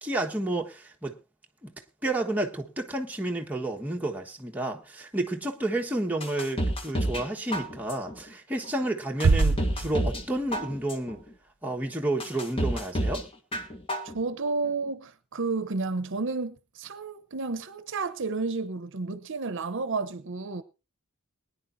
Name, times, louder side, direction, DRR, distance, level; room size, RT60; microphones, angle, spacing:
voice 1, 0.0-1.2 1.6-1.7 2.0-11.2 11.6-13.2, right 1 dB, 10° right, 1.4 m, -30 dB
sound 1, 6.2-7.3 7.5-8.1 8.6-8.7 9.2-10.2 10.5-11.1 11.6-11.7 12.2-13.2 13.5-14.1 14.5-14.6, equal, 25° left, 1.6 m, -29 dB
sound 2, 9.2-10.9, right 3 dB, 90° right, 0.7 m, -25 dB
voice 2, 14.0-20.6, right 3 dB, 60° right, 0.8 m, -31 dB
21.5 x 10.0 x 2.6 m
head